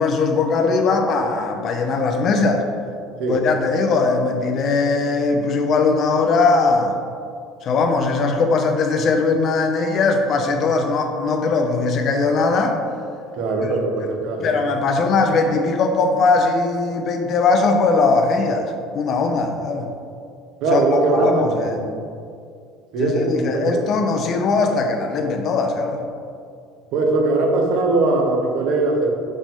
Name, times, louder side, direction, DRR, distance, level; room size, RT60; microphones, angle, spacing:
voice 1, 0.0-2.6 3.3-7.0 7.6-12.8 13.6-13.7 14.4-19.9 20.7-21.9 23.0-26.0, left 3 dB, 35° left, 5 dB, 0.6 m, -20 dB
voice 2, 13.4-14.5 20.6-21.5 22.9-23.8 26.9-29.1, right 3 dB, 60° right, 2 dB, 0.9 m, -20 dB
5.4 x 5.1 x 3.6 m, 2.3 s
cardioid pair, 165°, 0 cm